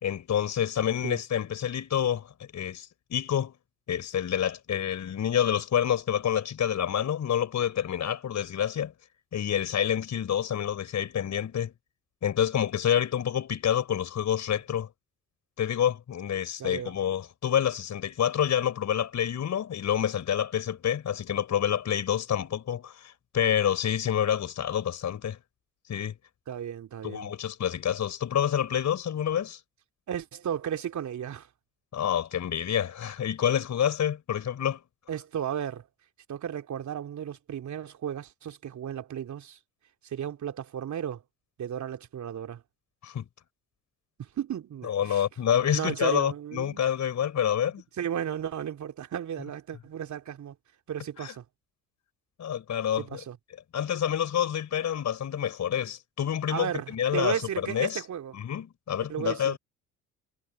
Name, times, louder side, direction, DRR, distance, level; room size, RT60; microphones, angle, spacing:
voice 1, 0.0-3.5 3.9-8.9 9.3-11.7 12.2-14.9 15.6-25.4 25.9-26.1 27.0-29.6 31.9-34.8 43.0-43.2 44.8-47.8 51.2-51.3 52.4-53.2 53.7-58.0 58.3-59.6, left 9 dB, 45° left, 5.0 m, -28 dB
voice 2, 16.6-16.9 26.5-27.3 30.1-31.5 35.1-35.9 36.3-39.6 40.0-41.2 41.6-42.6 44.2-45.2 45.7-46.8 48.0-50.5 50.9-51.4 53.0-53.4 56.5-58.3 59.1-59.6, right 9 dB, 45° right, 3.3 m, -34 dB
figure-of-eight pair, 50°, 40 cm